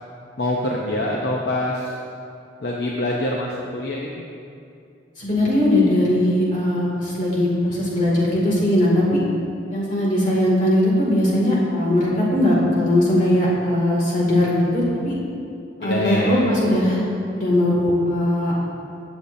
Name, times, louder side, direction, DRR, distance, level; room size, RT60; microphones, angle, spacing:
voice 1, 0.4-1.9 2.6-4.3 15.8-16.4, left 1 dB, 60° left, -2 dB, 0.8 m, -24 dB
voice 2, 5.2-9.2 9.7-15.2 15.8-17.0 17.3-18.5, left 1 dB, 40° left, -6 dB, 2.3 m, -19 dB
17.0 x 6.9 x 2.7 m, 2.5 s
head